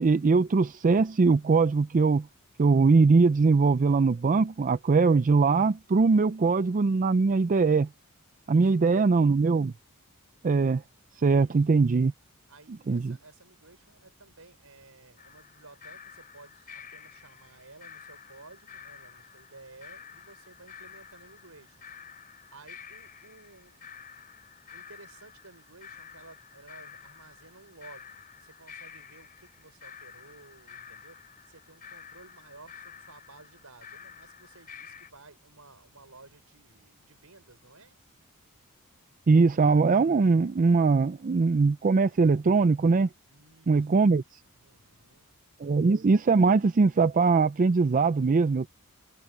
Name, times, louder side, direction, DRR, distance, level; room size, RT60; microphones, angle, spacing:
voice 1, 0.0-2.3 2.6-7.9 8.5-9.7 10.4-10.8 11.2-12.1 12.9-13.2 39.3-43.1 43.7-44.2 45.6-48.7, right 4 dB, 35° right, 0.4 m, -21 dB
voice 2, 8.5-9.1 11.3-11.6 12.5-21.8 22.5-23.8 24.7-38.0 43.3-43.9 44.6-45.3, right 3 dB, 70° right, 5.7 m, -54 dB
sound 1, 15.2-35.1, left 7 dB, 40° left, 3.6 m, -50 dB
head